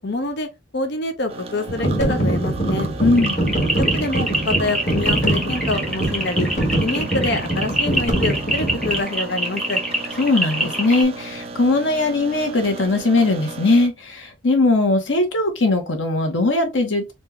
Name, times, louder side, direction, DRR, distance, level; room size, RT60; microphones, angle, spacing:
voice 1, 0.0-0.5 0.7-2.9 3.8-6.5 6.8-9.8, left 2 dB, 60° left, 0.7 m, -26 dB
sound 1, 1.3-13.9, right 3 dB, 30° right, 0.7 m, -35 dB
sound 2, 1.7-9.0, right 1 dB, 40° left, 1.5 m, -23 dB
voice 2, 3.0-3.4 10.2-17.1, left 2 dB, 90° left, 1.4 m, -19 dB
sound 3, 3.1-11.0, right 1 dB, ahead, 1.1 m, -26 dB
4.3 x 2.6 x 3.2 m
head